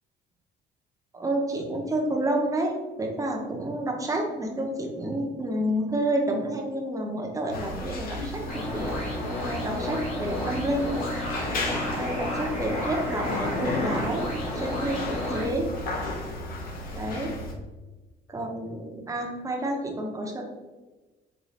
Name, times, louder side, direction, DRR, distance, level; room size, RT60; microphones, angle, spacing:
voice 1, 1.1-9.2 9.4-11.0 11.4-11.6 12.0-15.7 16.9-17.3 18.3-20.4, right 1 dB, 20° right, 1 dB, 0.6 m, -29 dB
sound 1, 7.5-17.5, left 2 dB, 60° left, 0.7 m, -34 dB
sound 2, 8.5-15.5, left 1 dB, 40° left, 1.3 m, -31 dB
3.2 x 3.0 x 2.7 m, 1.2 s
cardioid pair, 110°, 17 cm